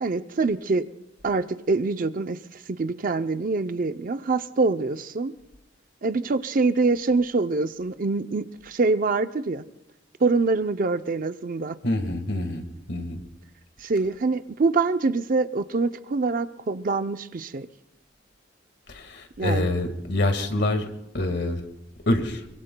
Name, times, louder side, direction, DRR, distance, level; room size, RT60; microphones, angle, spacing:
voice 1, 0.0-0.8 1.2-2.4 2.7-5.3 6.0-9.6 10.2-11.8 13.8-17.7 19.4-19.7, right 3 dB, 45° right, 11 dB, 0.5 m, -25 dB
voice 2, 11.8-13.2 18.9-20.9 21.1-21.6 22.1-22.4, left 1 dB, 65° left, 6 dB, 1.7 m, -26 dB
26.0 x 23.5 x 2.2 m, 0.88 s
head